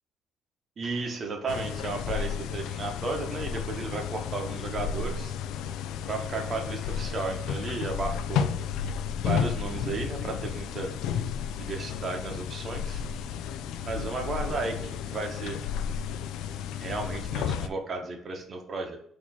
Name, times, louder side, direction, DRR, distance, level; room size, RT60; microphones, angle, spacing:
voice 1, 0.8-5.3 6.0-8.5 9.2-10.9 11.6-13.0 13.9-15.6 16.7-19.0, right 3 dB, 40° right, 3 dB, 1.0 m, -34 dB
sound 1, 1.5-17.7, left 8 dB, 85° left, 0.3 m, -32 dB
4.2 x 2.9 x 4.3 m, 0.64 s
cardioid pair, 110°, 0 cm